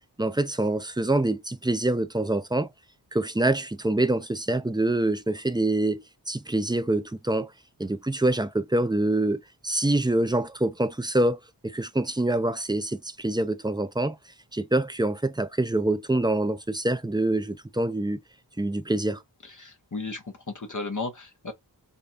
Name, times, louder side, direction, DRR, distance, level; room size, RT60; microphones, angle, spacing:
voice 1, 0.2-2.7 3.1-7.5 7.8-11.4 11.7-14.2 14.5-18.2 18.6-19.2, right 1 dB, 10° right, 0.5 m, -25 dB
voice 2, 19.4-21.5, left 3 dB, 45° left, 1.0 m, -35 dB
5.0 x 2.3 x 2.7 m
wide cardioid pair, 70°, 43 cm